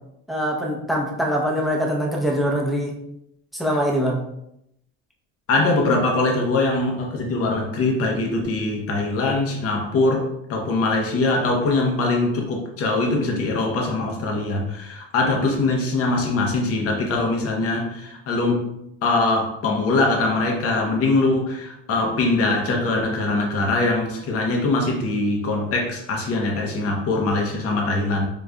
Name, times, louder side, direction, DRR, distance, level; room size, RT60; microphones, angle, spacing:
voice 1, 0.3-3.0 3.5-4.2, equal, ahead, -1 dB, 0.6 m, -23 dB
voice 2, 5.5-18.7 19.0-28.3, left 2 dB, 45° left, 0 dB, 0.8 m, -22 dB
4.9 x 2.4 x 2.2 m, 0.81 s
cardioid pair, 120°, 32 cm